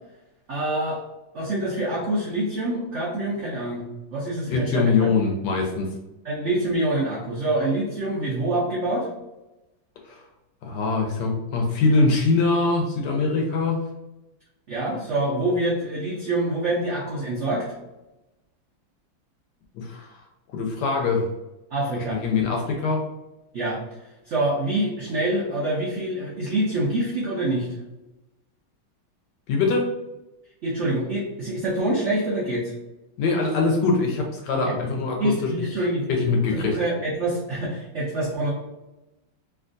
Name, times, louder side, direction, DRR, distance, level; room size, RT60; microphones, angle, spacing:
voice 1, 0.5-1.0 1.3-5.1 6.2-9.1 14.7-17.8 21.7-22.2 23.5-23.8 24.3-27.7 30.6-32.7 34.5-34.8 35.2-36.2 36.5-38.5, right 1 dB, 85° right, -5 dB, 0.6 m, -26 dB
voice 2, 4.5-5.9 10.0-10.2 10.6-13.8 19.7-20.2 20.5-21.3 21.9-23.0 29.5-29.9 33.2-35.7 36.1-36.8, left 3 dB, 75° left, 1 dB, 1.0 m, -23 dB
3.4 x 2.4 x 2.5 m, 0.95 s
omnidirectional pair, 2.1 m